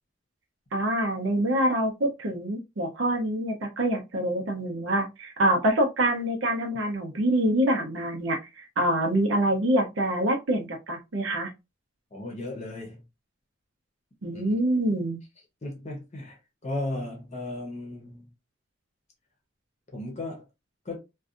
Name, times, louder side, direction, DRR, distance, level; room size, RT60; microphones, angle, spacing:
voice 1, 0.7-11.5 14.2-15.2, right 1 dB, 80° right, 0.7 m, -25 dB
voice 2, 12.1-13.0 14.3-14.6 15.6-18.3 19.9-20.5 20.8-21.0, left 2 dB, 35° left, 0.7 m, -35 dB
2.6 x 2.3 x 2.4 m
head